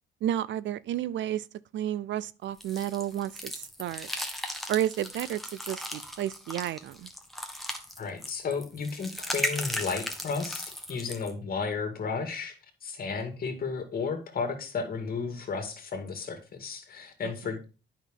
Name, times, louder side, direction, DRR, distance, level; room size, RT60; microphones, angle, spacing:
voice 1, 0.2-1.5 1.7-4.1 4.7-7.1 17.2-17.5, right 12 dB, 70° right, 0.5 m, -32 dB
sound 1, 2.6-11.3, left 1 dB, ahead, 1.4 m, -37 dB
voice 2, 8.0-12.5 12.8-17.7, left 5 dB, 50° left, 2.2 m, -33 dB
9.2 x 5.8 x 3.7 m
cardioid pair, 90°, 20 cm